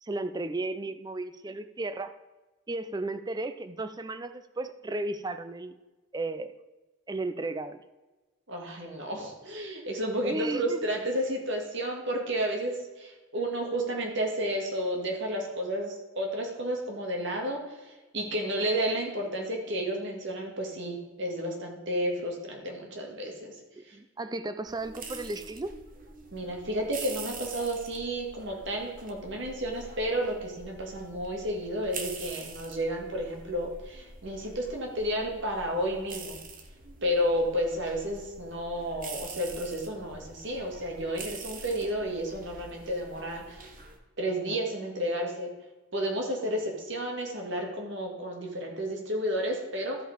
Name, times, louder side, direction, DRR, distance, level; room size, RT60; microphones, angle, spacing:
voice 1, 0.0-2.2 2.7-5.7 6.1-6.5 7.1-7.8 10.2-10.8 23.8-25.7, right 2 dB, 20° right, 10 dB, 0.4 m, -34 dB
voice 2, 8.5-23.5 23.9-24.0 26.3-36.4 37.0-43.7 44.2-45.5 45.9-50.0, equal, 55° right, 1 dB, 2.1 m, -32 dB
sound 1, 24.7-44.0, right 4 dB, 40° right, 1.1 m, -45 dB
13.5 x 5.2 x 5.0 m, 1.2 s
head